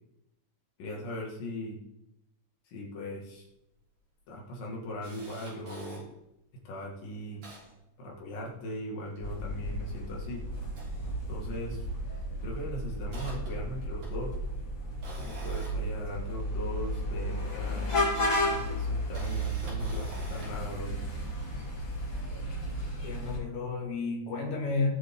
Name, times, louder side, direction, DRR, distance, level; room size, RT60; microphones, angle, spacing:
voice 1, 0.8-1.8 2.7-3.5 4.3-6.1 6.7-7.4 8.0-10.4 11.3-11.9 12.4-14.4 15.2-17.9 18.5-20.9, left 1 dB, 80° left, -3 dB, 4.1 m, -39 dB
Camera, 3.4-3.5 3.8-3.9 4.3-6.0 6.6-6.7 7.0-8.6 8.9-10.2 10.6-11.7 12.0-12.3 12.7-16.7 17.8-17.9 18.9-20.7 21.2-21.4, right 2 dB, 60° right, 6.0 m, -49 dB
sound 1, 9.2-23.4, equal, 35° left, 4.4 m, -33 dB
voice 2, 23.0-24.9, left 3 dB, 60° left, -2 dB, 3.7 m, -31 dB
19.0 x 7.6 x 3.9 m, 0.86 s
omnidirectional pair, 3.8 m